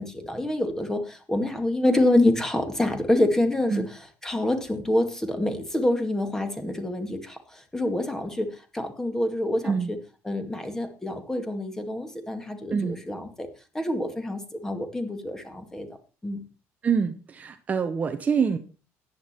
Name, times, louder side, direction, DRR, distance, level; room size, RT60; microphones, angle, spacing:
voice 1, 0.0-10.0 10.2-13.5 13.7-15.9 16.2-16.4, left 1 dB, 10° left, 7 dB, 2.1 m, -26 dB
voice 2, 16.8-18.6, right 6 dB, 25° right, 8 dB, 1.0 m, -25 dB
13.5 x 10.0 x 4.4 m, 0.33 s
cardioid pair, 145°, 6 cm